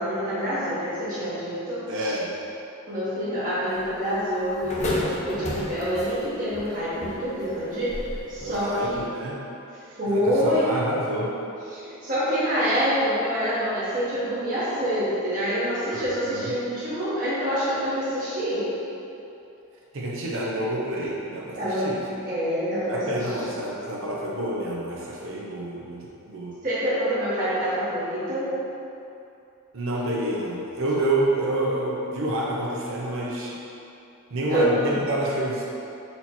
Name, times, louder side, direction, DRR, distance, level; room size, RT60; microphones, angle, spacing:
voice 1, 0.0-2.1 2.9-7.9 8.3-9.0 10.0-10.7 11.7-18.6 21.6-21.9 22.2-23.2 26.6-28.5 34.5-35.0, equal, 40° right, -11 dB, 1.0 m, -26 dB
voice 2, 1.9-2.3 8.4-9.4 10.1-11.3 15.9-16.5 19.9-22.0 22.9-26.5 29.7-33.6 34.3-35.6, right 1 dB, 65° right, -4 dB, 0.7 m, -28 dB
sound 1, 3.7-9.1, left 1 dB, 35° left, 0.7 m, -34 dB
4.3 x 2.8 x 4.3 m, 2.8 s
head